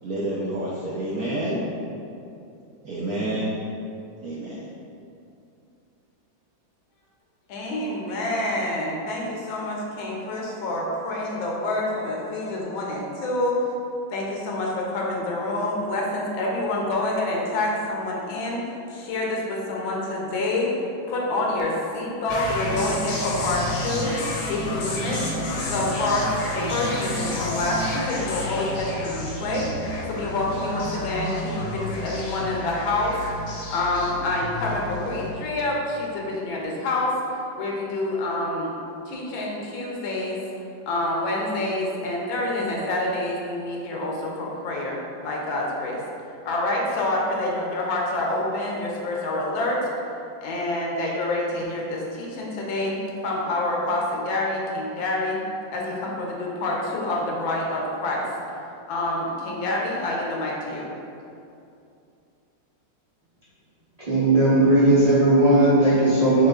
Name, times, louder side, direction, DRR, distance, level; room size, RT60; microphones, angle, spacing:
voice 1, 0.0-1.6 2.8-3.5 4.2-4.6, right 1 dB, 75° right, -6 dB, 0.8 m, -28 dB
voice 2, 7.5-13.5 14.1-24.1 24.5-38.8 39.0-40.4 40.9-46.0 46.4-49.9 50.4-52.9 53.2-55.4 55.7-58.3 58.9-60.9, left 2 dB, 85° left, -2 dB, 1.6 m, -27 dB
sound 1, 22.3-35.3, left 1 dB, 65° left, 1.1 m, -30 dB
voice 3, 64.1-66.5, right 1 dB, 30° right, -10 dB, 0.7 m, -17 dB
6.5 x 3.2 x 2.4 m, 2.6 s
omnidirectional pair, 2.1 m